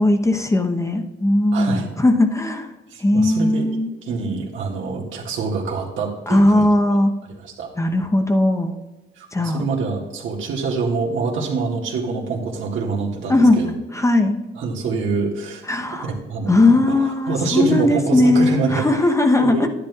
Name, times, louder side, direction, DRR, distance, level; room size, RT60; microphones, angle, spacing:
voice 1, 0.0-2.7 3.0-3.9 6.3-7.1 7.8-8.7 9.3-9.7 13.3-13.6 13.9-14.4 15.7-16.1 16.5-19.7, left 2 dB, 15° left, 4 dB, 0.8 m, -18 dB
voice 2, 1.5-1.9 2.9-3.7 4.0-6.7 7.3-7.7 9.2-13.7 14.5-15.6 15.9-18.9 19.4-19.7, right 4 dB, 80° right, -2 dB, 1.7 m, -25 dB
10.5 x 10.0 x 2.3 m, 1.1 s
cardioid pair, 90°, 20 cm